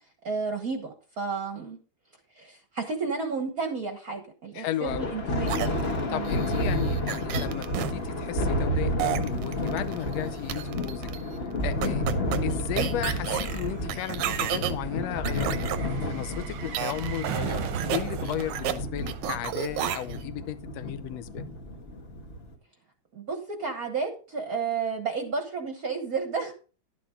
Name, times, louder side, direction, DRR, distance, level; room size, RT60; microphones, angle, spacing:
voice 1, 0.2-1.8 2.3-5.5 6.1-6.3 23.1-26.5, right 5 dB, 50° right, 1.1 m, -32 dB
voice 2, 4.5-5.1 5.9-11.1 11.6-12.0 12.4-15.6 16.0-21.5, left 12 dB, 75° left, 1.7 m, -35 dB
Thunder, 4.8-22.5, left 1 dB, 40° left, 0.8 m, -31 dB
sound 1, 5.5-7.9 9.0-10.1 10.5-11.2 11.8-14.7 15.2-15.8 16.7-17.2 17.5-18.8 19.1-20.2, right 11 dB, 85° right, 2.3 m, -32 dB
sound 2, 9.3-9.4 9.6-20.0 20.3-20.4, right 8 dB, 65° right, 1.4 m, -39 dB
11.5 x 8.6 x 3.8 m
omnidirectional pair, 3.3 m